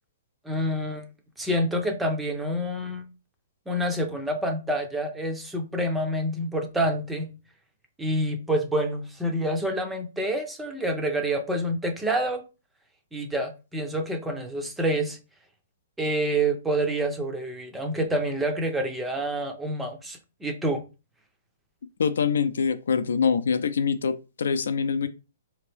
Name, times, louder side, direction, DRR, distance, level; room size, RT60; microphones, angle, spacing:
voice 1, 0.4-1.1 1.4-3.0 3.7-7.3 8.0-12.4 13.1-15.2 16.0-20.8, right 1 dB, 5° right, 0.5 m, -27 dB
voice 2, 22.0-25.1, left 6 dB, 75° left, 0.5 m, -24 dB
4.5 x 2.8 x 3.3 m
hypercardioid pair, 175°, 0 cm